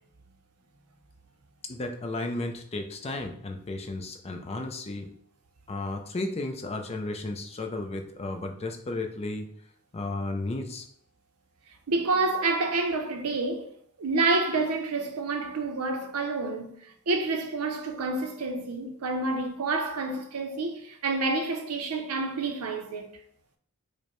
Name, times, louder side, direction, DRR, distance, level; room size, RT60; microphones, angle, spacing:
voice 1, 1.6-5.1 5.7-9.4 9.9-10.8, left 2 dB, 30° left, 0.5 m, -33 dB
voice 2, 11.9-13.7 14.0-16.7 17.1-23.1, right 3 dB, 85° right, 0.6 m, -28 dB
4.9 x 2.1 x 3.0 m
head